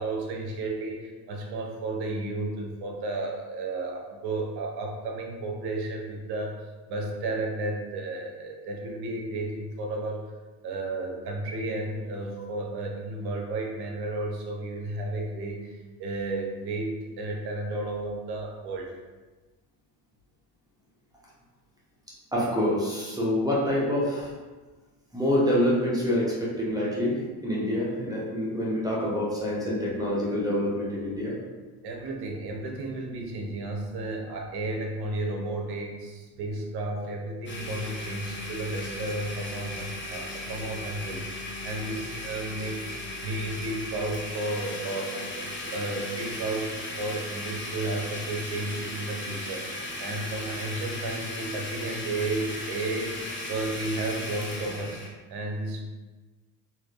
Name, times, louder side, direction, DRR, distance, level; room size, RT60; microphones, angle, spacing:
voice 1, 0.0-6.6 6.9-10.2 10.6-18.9 31.8-55.0 55.3-55.8, right 2 dB, 55° right, 1 dB, 0.8 m, -33 dB
voice 2, 22.3-24.3 25.1-31.4, left 1 dB, 10° right, -6 dB, 0.8 m, -26 dB
Domestic sounds home sounds, 37.5-55.1, left 1 dB, 25° left, 0.7 m, -36 dB
3.3 x 2.7 x 2.4 m, 1.3 s
supercardioid pair, 85°, 47 cm